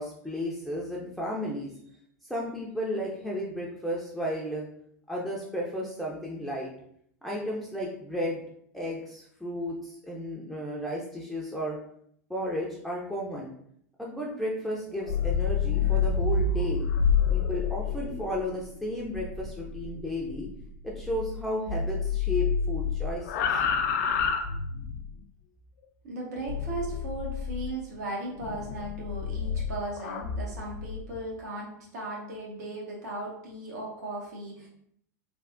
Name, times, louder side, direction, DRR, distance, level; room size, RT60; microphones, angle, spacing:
voice 1, 0.0-1.7 2.3-4.7 5.1-6.7 7.2-8.4 8.7-11.8 12.3-13.5 14.0-16.8 17.3-20.5 20.8-23.6, equal, ahead, -4 dB, 0.5 m, -33 dB
sound 1, 14.9-21.4 21.7-25.1 26.5-27.7 28.4-31.0, left 6 dB, 65° left, 0.4 m, -29 dB
voice 2, 26.0-34.7, right 2 dB, 70° right, -3 dB, 1.2 m, -37 dB
3.3 x 2.3 x 2.5 m, 0.68 s
hypercardioid pair, 100°, 9 cm